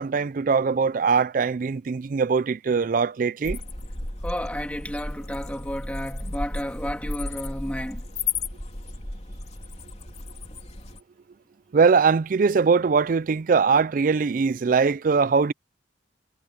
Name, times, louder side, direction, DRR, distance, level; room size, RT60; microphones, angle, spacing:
voice 1, 0.0-3.6 11.7-15.5, right 5 dB, 50° right, 0.4 m, -21 dB
sound 1, 3.4-11.0, left 3 dB, 35° left, 3.2 m, -34 dB
voice 2, 4.2-8.0, equal, 10° left, 2.9 m, -32 dB
head